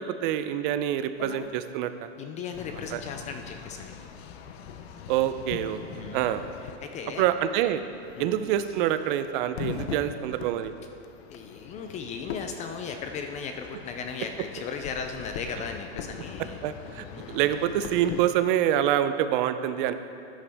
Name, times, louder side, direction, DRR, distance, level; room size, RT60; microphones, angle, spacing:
voice 1, 0.0-2.1 2.9-3.0 5.1-6.4 7.2-7.8 8.2-10.7 16.6-19.9, right 11 dB, 45° right, 11 dB, 0.6 m, -26 dB
sound 1, 1.2-1.5 2.5-18.2, left 7 dB, 60° left, 0.9 m, -42 dB
voice 2, 2.2-3.9 6.0-6.4 6.8-7.2 8.2-8.3 11.3-16.6 17.1-17.5, left 6 dB, 20° left, 6 dB, 0.4 m, -37 dB
13.5 x 10.0 x 3.5 m, 2.4 s
supercardioid pair, 140°, 35 cm